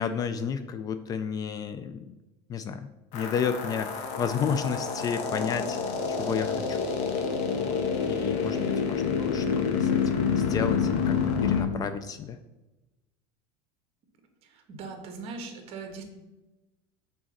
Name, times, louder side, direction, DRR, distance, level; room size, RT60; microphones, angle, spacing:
voice 1, 0.0-2.0 2.5-5.8 6.1-6.8 7.6-7.8 8.0-11.2 11.4-12.4, left 7 dB, 30° left, 10 dB, 0.4 m, -32 dB
sound 1, 3.1-11.6, left 6 dB, 60° left, 1.2 m, -28 dB
voice 2, 14.4-16.0, right 4 dB, 45° right, 4 dB, 1.4 m, -40 dB
6.3 x 4.0 x 6.3 m, 1.0 s
supercardioid pair, 145°, 14 cm